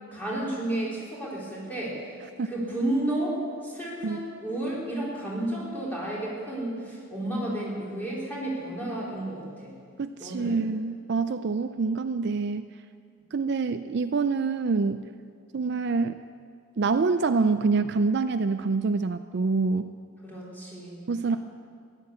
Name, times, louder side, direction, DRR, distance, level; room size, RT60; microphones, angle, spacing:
voice 1, 0.1-2.2 2.5-9.7 10.2-10.6 20.2-21.4, right 1 dB, 10° left, -6 dB, 4.0 m, -32 dB
voice 2, 10.0-12.7 13.3-15.1 15.5-16.2 16.8-19.9 21.1-21.4, right 4 dB, 50° right, 10 dB, 0.4 m, -26 dB
15.0 x 11.0 x 8.3 m, 2.1 s
head